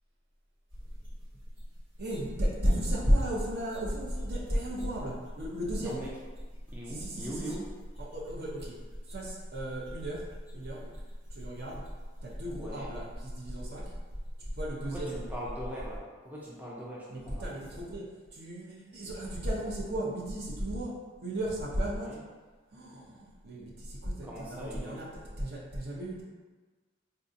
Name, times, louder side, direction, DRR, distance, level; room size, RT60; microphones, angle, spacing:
sound 1, 0.7-16.0, equal, 85° right, 1.4 m, -43 dB
voice 1, 0.8-1.4 2.0-6.0 6.9-7.6 8.0-10.3 10.5-10.9 11.3-11.9 12.2-13.9 14.4-15.3 17.1-21.0 21.2-22.2 22.7-26.2, equal, 60° right, -4 dB, 0.7 m, -34 dB
voice 2, 6.7-7.6 12.5-12.9 14.9-17.5 21.9-22.2 24.2-25.0, equal, 10° right, -6 dB, 0.4 m, -41 dB
3.7 x 2.3 x 2.6 m, 1.3 s
head